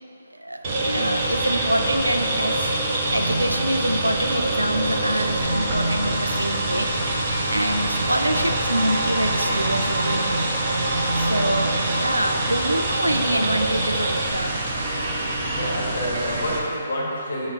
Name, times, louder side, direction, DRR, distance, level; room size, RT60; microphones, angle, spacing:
voice 1, 0.4-2.7 3.1-6.9 7.5-10.5 11.2-14.6, right 1 dB, 85° right, 5 dB, 0.4 m, -26 dB
sound 1, 0.6-16.6, right 1 dB, 35° right, 1.0 m, -24 dB
sound 2, 4.8-10.0, left 1 dB, 80° left, 0.5 m, -34 dB
voice 2, 15.5-17.5, equal, 60° left, -5 dB, 1.4 m, -28 dB
7.1 x 3.1 x 5.3 m, 2.7 s
figure-of-eight pair, 135°, 0 cm